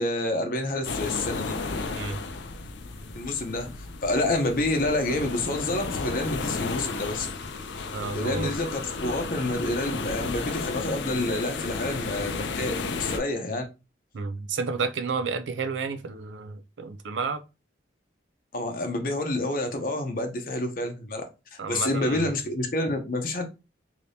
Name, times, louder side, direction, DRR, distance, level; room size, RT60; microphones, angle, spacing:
voice 1, 0.0-1.5 3.1-3.7 4.0-7.3 8.1-13.6 18.5-21.2 21.5-23.5, left 2 dB, 50° left, 0.7 m, -28 dB
sound 1, 0.8-13.2, left 3 dB, 80° left, 0.5 m, -33 dB
voice 2, 7.9-8.5 14.1-17.4 21.6-22.3, right 4 dB, 85° right, 0.4 m, -31 dB
3.3 x 2.8 x 2.7 m
head